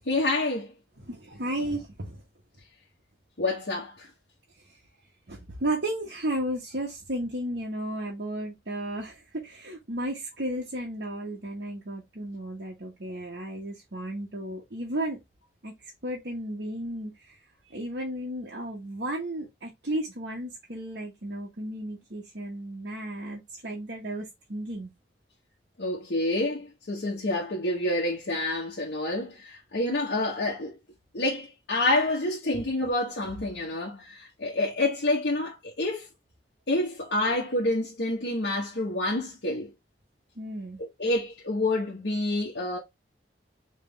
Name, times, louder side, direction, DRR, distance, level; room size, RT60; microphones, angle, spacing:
voice 1, 0.1-0.7 3.4-3.9 25.8-30.7 31.1-36.1 36.7-39.7 40.8-42.8, left 2 dB, 85° left, 1.1 m, -28 dB
voice 2, 1.0-2.2 5.3-15.2 15.6-15.7 16.0-17.1 17.7-24.9 32.5-32.6 40.4-40.8, right 1 dB, 75° right, 1.2 m, -34 dB
3.6 x 3.3 x 3.3 m
head